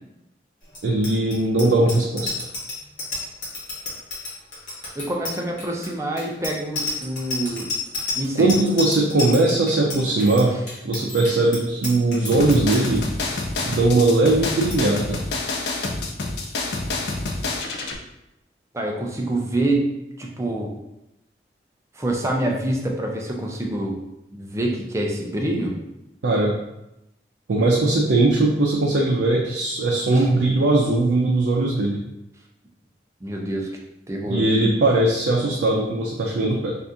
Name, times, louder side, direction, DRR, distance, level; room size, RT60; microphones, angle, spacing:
Bicycle bell, 0.7-13.0 13.4-13.6 13.9-14.2 14.5-14.8, left 2 dB, 45° left, 1.1 m, -31 dB
voice 1, 0.8-2.5 8.4-10.5 10.8-13.0 13.6-15.2 26.2-26.5 27.5-32.0 34.2-36.7, right 2 dB, 90° right, -2 dB, 0.4 m, -20 dB
voice 2, 5.0-7.7 8.2-8.5 10.5-10.6 18.7-19.9 20.2-20.7 22.0-24.0 24.3-25.7 30.1-30.3 33.2-33.7 34.1-34.4, right 1 dB, 15° right, 0 dB, 0.4 m, -26 dB
sound 1, 12.3-18.0, left 2 dB, 70° left, 0.4 m, -27 dB
2.8 x 2.4 x 3.5 m, 0.89 s
head